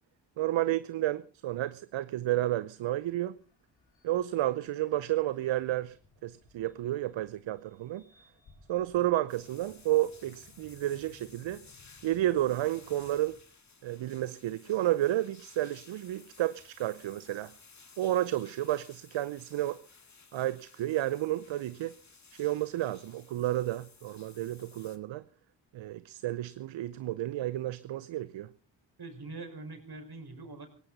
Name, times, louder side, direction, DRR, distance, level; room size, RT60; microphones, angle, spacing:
voice 1, 0.4-3.4 4.0-6.0 6.2-8.0 8.7-11.6 12.0-13.4 13.8-17.5 18.0-19.8 20.3-21.9 22.3-25.2 25.7-28.5, right 14 dB, 65° right, 0.8 m, -31 dB
sound 1, 2.8-13.4, left 3 dB, 65° left, 5.3 m, -62 dB
sound 2, 9.3-25.0, left 4 dB, 35° left, 2.3 m, -57 dB
voice 2, 29.0-30.7, right 3 dB, 50° right, 5.4 m, -43 dB
18.0 x 16.5 x 4.1 m
hypercardioid pair, 40°, 49 cm